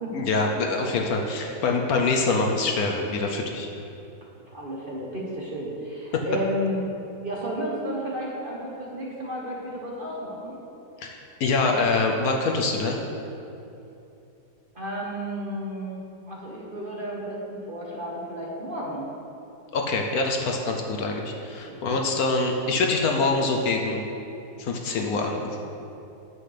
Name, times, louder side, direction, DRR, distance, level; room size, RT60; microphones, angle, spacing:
voice 1, 0.1-3.7 6.1-6.2 11.0-13.0 19.7-24.0 24.6-25.4, left 3 dB, 65° left, 2 dB, 1.1 m, -25 dB
voice 2, 4.5-6.8 7.2-10.6 14.7-16.0 16.3-19.1 21.6-21.7, equal, 35° right, -4 dB, 1.0 m, -32 dB
9.5 x 7.7 x 3.4 m, 2.8 s
omnidirectional pair, 1.8 m